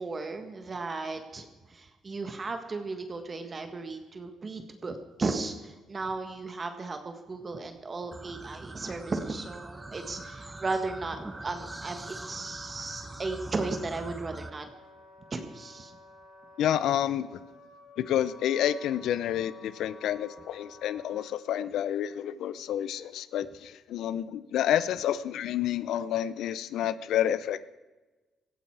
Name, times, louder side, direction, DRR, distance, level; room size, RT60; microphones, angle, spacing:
voice 1, 0.0-14.7 15.3-16.0, right 3 dB, 35° right, 6 dB, 1.6 m, -35 dB
sound 1, 8.1-14.5, right 2 dB, 15° right, 0.8 m, -43 dB
Wind instrument woodwind instrument, 9.7-21.3, left 2 dB, 50° left, 5.4 m, -53 dB
voice 2, 16.6-17.3 18.0-27.7, left 11 dB, 80° left, 16 dB, 0.6 m, -29 dB
17.5 x 14.5 x 4.8 m, 1.2 s
cardioid pair, 90°, 0 cm